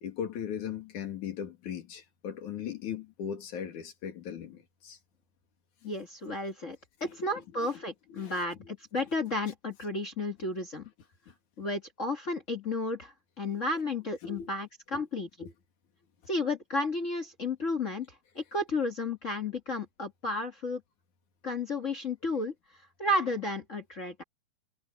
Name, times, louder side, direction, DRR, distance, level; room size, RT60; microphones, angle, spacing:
voice 1, 0.0-5.0 7.0-7.8 8.1-8.5 13.5-13.6 14.2-14.5 14.9-15.1 15.4-15.5, left 8 dB, 70° left, 3.6 m, -39 dB
voice 2, 5.8-10.8 11.6-15.3 16.3-20.8 21.4-24.2, left 2 dB, 35° left, 1.2 m, -33 dB
omnidirectional pair, 3.6 m